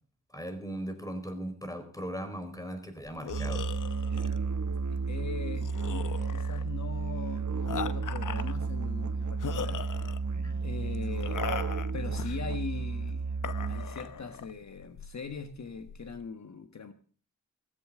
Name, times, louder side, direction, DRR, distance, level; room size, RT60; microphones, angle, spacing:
voice 1, 0.3-3.7 10.3-10.6, equal, 10° left, 8 dB, 4.6 m, -38 dB
sound 1, 3.1-16.2, left 8 dB, 80° left, 1.0 m, -41 dB
Musical instrument, 3.3-14.1, right 4 dB, 65° right, 1.1 m, -32 dB
voice 2, 4.9-9.8 10.6-11.4 11.9-13.2 13.7-16.9, left 5 dB, 60° left, 8 dB, 1.5 m, -41 dB
16.5 x 15.0 x 3.7 m, 0.42 s
cardioid pair, 65°, 31 cm